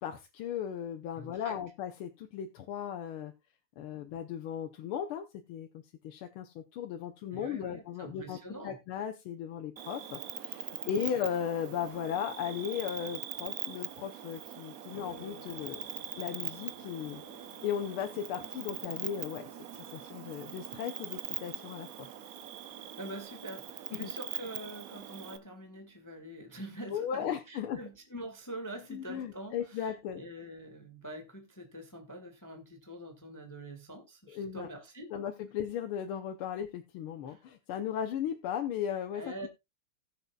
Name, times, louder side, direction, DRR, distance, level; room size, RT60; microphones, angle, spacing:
voice 1, 0.0-3.3 3.8-15.8 16.2-17.2 17.6-19.5 19.9-22.1 23.9-24.1 26.9-27.8 28.9-30.2 34.3-34.7 35.1-39.5, left 9 dB, 75° left, 1.7 m, -36 dB
voice 2, 1.2-1.6 7.3-8.8 10.8-11.0 22.8-35.1 37.3-37.4 39.1-39.5, right 1 dB, 10° left, 1.2 m, -45 dB
Cricket, 9.8-25.4, right 10 dB, 65° right, 0.8 m, -42 dB
sound 1, 14.9-28.5 28.8-31.0, equal, 30° right, 3.0 m, -59 dB
19.5 x 6.7 x 2.3 m
omnidirectional pair, 2.4 m